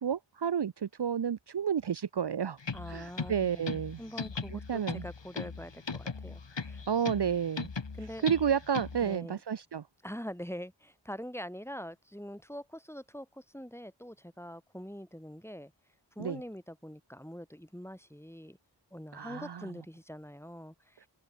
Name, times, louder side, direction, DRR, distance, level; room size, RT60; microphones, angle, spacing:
voice 1, 0.0-2.6 2.9-4.0 4.5-5.0 6.9-7.7 8.2-9.8 16.2-16.4 19.1-19.7, right 8 dB, 60° right, 0.7 m, -31 dB
sound 1, 2.6-9.1, left 4 dB, 70° left, 2.0 m, -39 dB
voice 2, 2.7-6.8 8.0-8.3 9.0-9.4 10.0-15.7 16.2-18.6 18.9-21.1, equal, 5° left, 5.4 m, -44 dB
open air
wide cardioid pair, 40°, 45 cm